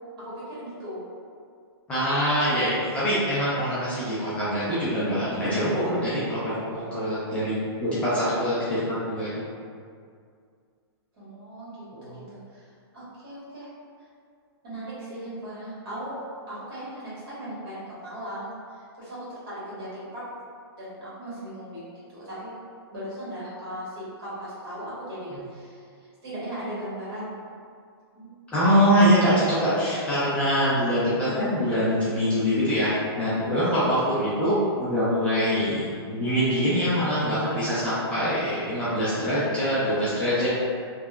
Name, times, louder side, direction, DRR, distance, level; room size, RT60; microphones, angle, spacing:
voice 1, 0.2-1.0 11.2-11.8 12.1-12.7 12.9-13.7 14.6-16.2 16.5-20.2 20.8-22.5 22.9-25.8 26.2-27.4 28.1-28.3, right 1 dB, 60° right, -9 dB, 1.4 m, -38 dB
voice 2, 1.9-9.3 11.9-12.2 28.5-32.9 33.2-40.5, equal, 10° left, -12 dB, 0.4 m, -24 dB
2.8 x 2.2 x 2.3 m, 2.2 s
hypercardioid pair, 155°, 14 cm